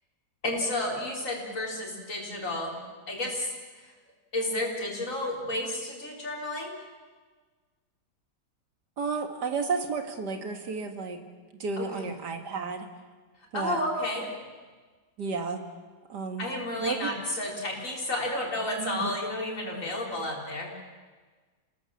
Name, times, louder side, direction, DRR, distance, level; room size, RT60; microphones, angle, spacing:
voice 1, 0.4-2.8 3.1-3.9 4.3-6.8 11.8-12.0 13.5-14.3 16.4-20.7, left 1 dB, 50° left, -1 dB, 4.4 m, -31 dB
voice 2, 9.0-11.2 11.6-12.9 13.5-13.8 15.2-15.6 16.1-16.5 16.8-17.1 18.8-19.1, right 4 dB, 85° right, 6 dB, 2.5 m, -32 dB
28.0 x 17.5 x 7.3 m, 1.4 s
omnidirectional pair, 1.8 m